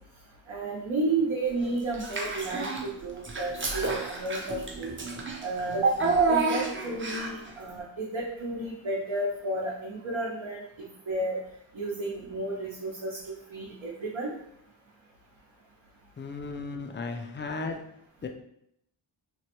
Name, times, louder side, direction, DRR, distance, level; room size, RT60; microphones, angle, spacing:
voice 1, 0.5-4.9 5.4-6.0 6.3-11.4 11.7-14.3, right 2 dB, 70° right, -5 dB, 0.7 m, -32 dB
Child speech kid speaking / Bathtub (filling or washing), 1.9-2.9 3.2-7.5, right 4 dB, 25° right, 0.5 m, -29 dB
voice 2, 16.2-17.8 18.2-18.3, left 4 dB, 25° left, 4 dB, 0.4 m, -35 dB
3.1 x 2.1 x 2.9 m, 0.74 s
cardioid pair, 50°, 48 cm